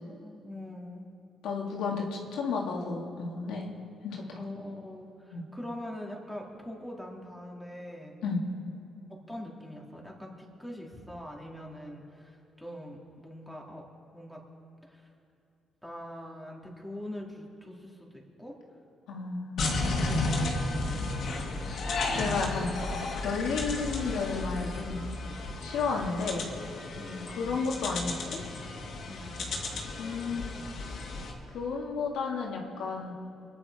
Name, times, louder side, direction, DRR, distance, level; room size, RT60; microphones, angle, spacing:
voice 1, 0.1-1.1 4.4-8.1 9.3-13.8 14.1-14.4 14.9-15.1 15.8-18.5 20.1-21.2 27.0-27.6 29.1-29.4, left 1 dB, ahead, -2 dB, 3.2 m, -43 dB
voice 2, 1.4-3.7 4.0-4.4 5.3-5.4 8.2-8.4 19.1-20.1 22.2-22.7 23.2-25.1 25.6-26.5 27.4-28.4 30.0-30.4 30.8-31.0 31.5-33.1, left 4 dB, 85° left, -1 dB, 2.2 m, -32 dB
sound 1, 19.6-31.3, left 2 dB, 65° left, 2.5 m, -33 dB
24.0 x 10.0 x 5.0 m, 2.8 s
cardioid pair, 90°, 0 cm